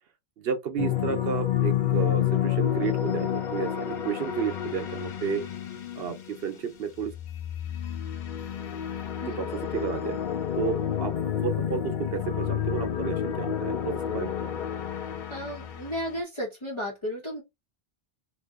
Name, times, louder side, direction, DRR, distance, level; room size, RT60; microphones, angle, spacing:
voice 1, 0.4-5.4 6.0-7.1 9.3-10.2 10.5-11.1 11.4-14.5, right 7 dB, 70° right, 0.8 m, -32 dB
sound 1, 0.8-6.6 7.0-16.2, left 10 dB, 55° left, 0.6 m, -30 dB
voice 2, 9.2-9.5 15.3-17.4, equal, 30° left, 1.1 m, -34 dB
2.7 x 2.6 x 3.5 m
omnidirectional pair, 1.1 m